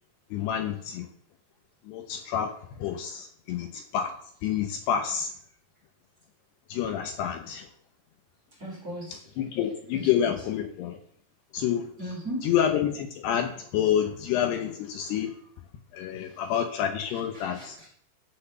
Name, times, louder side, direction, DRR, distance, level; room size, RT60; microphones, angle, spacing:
voice 1, 0.3-1.1 1.9-2.5 2.8-4.1 4.4-5.3 6.7-7.7 9.4-11.0 11.5-11.9 12.4-15.4 15.9-17.8, left 9 dB, 75° left, 5 dB, 2.7 m, -28 dB
voice 2, 8.6-9.2 9.9-10.3 12.0-12.5 16.3-16.4 17.3-17.9, equal, 20° right, -3 dB, 3.6 m, -37 dB
14.0 x 6.4 x 6.8 m, 0.64 s
omnidirectional pair, 5.3 m